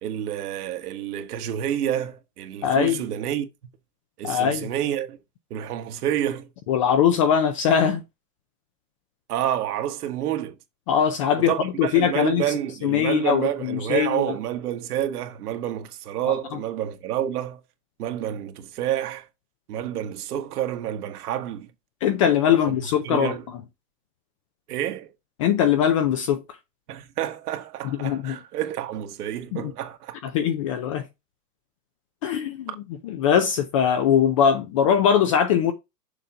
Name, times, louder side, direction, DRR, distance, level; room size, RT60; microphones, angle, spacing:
voice 1, 0.0-3.5 4.2-5.2 5.5-6.5 9.3-10.5 11.4-17.6 18.0-19.3 19.7-21.7 22.7-22.8 23.0-23.5 24.7-25.1 26.9-30.2 32.7-32.8, right 11 dB, 70° right, 1.5 m, -28 dB
voice 2, 2.6-3.0 4.2-4.7 6.7-8.0 10.9-11.5 11.8-12.4 12.8-14.3 22.0-23.4 25.4-26.4 28.0-28.4 29.5-29.7 30.2-31.0 32.2-32.7 33.0-35.7, left 8 dB, 25° left, 0.3 m, -21 dB
6.9 x 3.6 x 5.7 m
hypercardioid pair, 130°, 48 cm